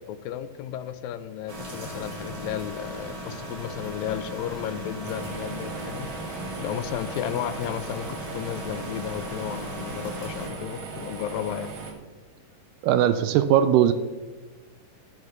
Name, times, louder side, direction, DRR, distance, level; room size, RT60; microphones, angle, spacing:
voice 1, 0.0-11.7, left 10 dB, 85° left, 12 dB, 2.3 m, -33 dB
sound 1, 1.5-10.5, right 1 dB, 15° right, 1.2 m, -37 dB
sound 2, 5.0-11.9, right 4 dB, 60° right, 2.8 m, -39 dB
voice 2, 12.8-13.9, right 10 dB, 80° right, 11 dB, 2.0 m, -19 dB
12.0 x 6.5 x 6.0 m, 1.3 s
omnidirectional pair, 4.1 m